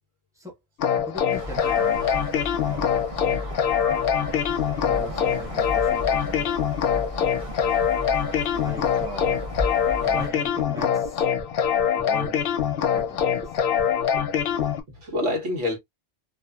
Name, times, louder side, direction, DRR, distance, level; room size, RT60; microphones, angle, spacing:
sound 1, 0.8-14.8, left 8 dB, 65° left, 0.7 m, -24 dB
voice 1, 1.0-2.2 2.6-3.0 4.8-6.5 8.5-9.4 10.0-11.2 11.9-12.4 12.8-13.5, equal, 5° right, 0.9 m, -39 dB
sound 2, 1.0-14.7, right 2 dB, 55° right, 1.1 m, -41 dB
sound 3, 1.3-10.3, left 1 dB, 40° right, 0.6 m, -35 dB
voice 2, 7.1-7.7 9.8-10.1 14.9-15.8, left 2 dB, 90° right, 1.4 m, -29 dB
2.6 x 2.4 x 2.2 m
omnidirectional pair, 1.2 m